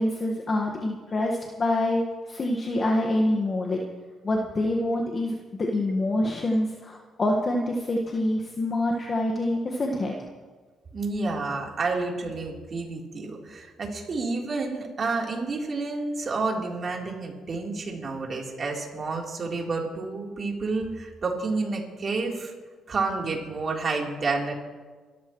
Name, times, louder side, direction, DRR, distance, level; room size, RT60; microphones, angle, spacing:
voice 1, 0.0-2.0 2.3-3.8 4.2-10.1, left 1 dB, 35° left, 0 dB, 1.6 m, -26 dB
voice 2, 10.9-22.5 22.9-24.5, right 3 dB, 45° right, -1 dB, 3.7 m, -30 dB
30.0 x 14.0 x 3.2 m, 1.4 s
cardioid pair, 90°, 0 cm